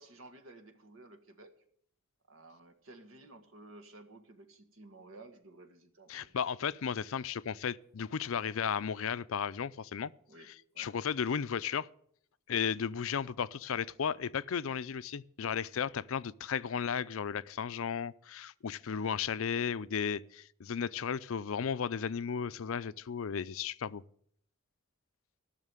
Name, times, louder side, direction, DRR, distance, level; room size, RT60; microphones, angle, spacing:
voice 1, 0.0-1.5 2.3-6.4 10.3-10.9, right 2 dB, 70° right, 1.7 m, -54 dB
voice 2, 6.1-10.1 10.8-11.9 12.5-24.0, left 7 dB, 75° left, 0.5 m, -34 dB
14.5 x 6.5 x 9.0 m
head